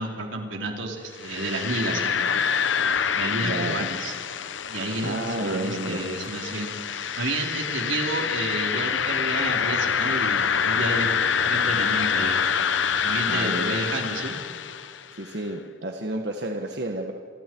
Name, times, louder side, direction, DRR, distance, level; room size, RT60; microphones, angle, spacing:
voice 1, 0.0-2.3 3.1-4.1 4.7-11.1 11.4-12.4 13.0-14.4, right 2 dB, 80° right, 1 dB, 3.8 m, -31 dB
sound 1, 1.2-15.1, left 7 dB, 70° left, 0.9 m, -26 dB
voice 2, 3.4-3.9 5.0-6.1 13.3-13.8 15.1-17.1, right 1 dB, 55° right, 2 dB, 1.5 m, -31 dB
29.0 x 25.0 x 4.7 m, 2.2 s
head